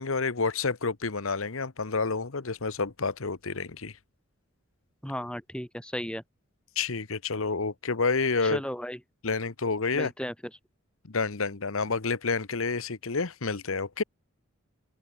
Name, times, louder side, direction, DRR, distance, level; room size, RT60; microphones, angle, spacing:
voice 1, 0.0-3.9 6.8-8.6 9.2-10.1 11.0-14.0, left 4 dB, 75° left, 1.1 m, -29 dB
voice 2, 5.0-6.2 8.4-9.0 9.9-10.3, equal, 5° left, 4.7 m, -34 dB
head